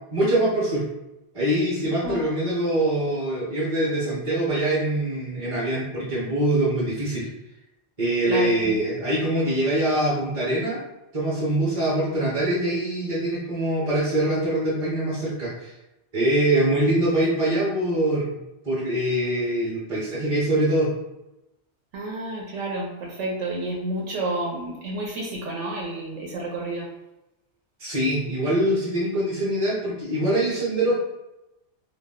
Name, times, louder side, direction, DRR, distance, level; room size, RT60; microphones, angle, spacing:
voice 1, 0.1-0.8 1.3-7.3 8.0-10.8 11.1-15.7 16.1-18.3 18.6-20.9 27.8-31.0, right 1 dB, 35° right, -6 dB, 0.7 m, -23 dB
voice 2, 8.3-8.8 21.9-26.9, right 1 dB, 90° right, -3 dB, 1.0 m, -30 dB
2.3 x 2.2 x 3.6 m, 0.95 s
omnidirectional pair, 1.2 m